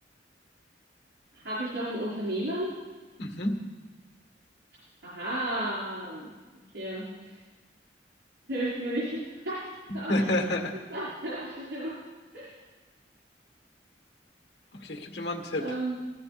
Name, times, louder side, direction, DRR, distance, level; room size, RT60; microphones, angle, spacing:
voice 1, 1.3-2.7 5.0-6.3 6.7-7.0 8.5-9.6 9.9-10.3 10.9-12.0 12.3-12.5 15.6-16.0, right 1 dB, 85° right, -8 dB, 5.5 m, -33 dB
voice 2, 3.2-3.6 10.1-10.8 14.7-15.7, left 1 dB, 70° left, 3 dB, 1.8 m, -29 dB
16.0 x 15.0 x 5.3 m, 1.3 s
head